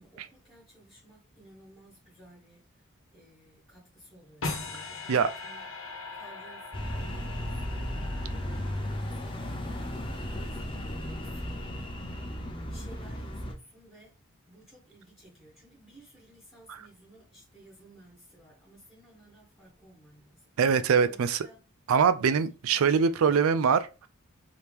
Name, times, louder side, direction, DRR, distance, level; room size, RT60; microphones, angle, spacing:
voice 1, 0.0-5.9 6.1-12.2 12.7-20.5 21.0-21.6 22.7-23.3, right 1 dB, ahead, 1.5 m, -56 dB
sound 1, 4.4-9.6, left 3 dB, 75° left, 1.1 m, -40 dB
sound 2, 6.7-13.5, left 1 dB, 25° left, 0.6 m, -35 dB
voice 2, 20.6-21.5 21.9-24.1, right 6 dB, 80° right, 0.4 m, -23 dB
4.8 x 2.9 x 3.4 m
head